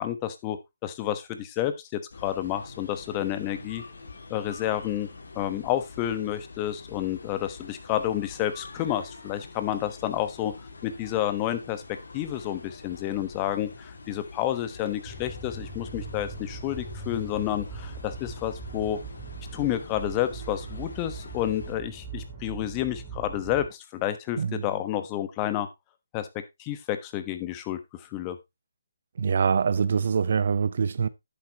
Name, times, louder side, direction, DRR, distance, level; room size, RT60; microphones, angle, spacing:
voice 1, 0.0-3.8 4.3-5.1 5.3-10.5 10.8-11.8 12.1-19.0 19.5-25.7 26.1-26.3 26.6-28.4, left 12 dB, 20° left, 1.2 m, -30 dB
sound 1, 2.1-21.8, left 3 dB, 70° left, 3.9 m, -45 dB
sound 2, 15.0-23.7, right 4 dB, 15° right, 5.8 m, -40 dB
voice 2, 29.2-31.1, right 6 dB, 55° right, 0.8 m, -24 dB
10.5 x 8.5 x 3.0 m
hypercardioid pair, 160°, 0 cm